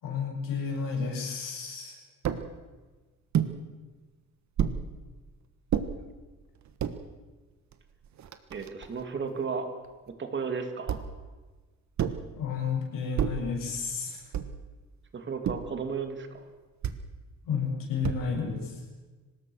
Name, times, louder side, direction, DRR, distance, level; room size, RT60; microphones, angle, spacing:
voice 1, 0.0-2.0 12.4-14.2 17.4-18.7, left 5 dB, 90° left, 1 dB, 7.0 m, -31 dB
sound 1, 2.2-2.5 3.3-3.6 4.6-4.8 5.7-5.9 6.6-7.0 7.7-7.8 8.0-9.1 10.9-11.2 12.0-12.3 13.2-13.5 14.3-14.7 15.4-15.8 16.8-17.1 18.0-18.5, right 8 dB, 55° right, 1.5 m, -30 dB
voice 2, 8.5-9.7 10.2-11.0 15.1-16.5, right 5 dB, 35° right, 6 dB, 2.4 m, -34 dB
24.0 x 20.0 x 6.3 m, 1.3 s
cardioid pair, 170°, 32 cm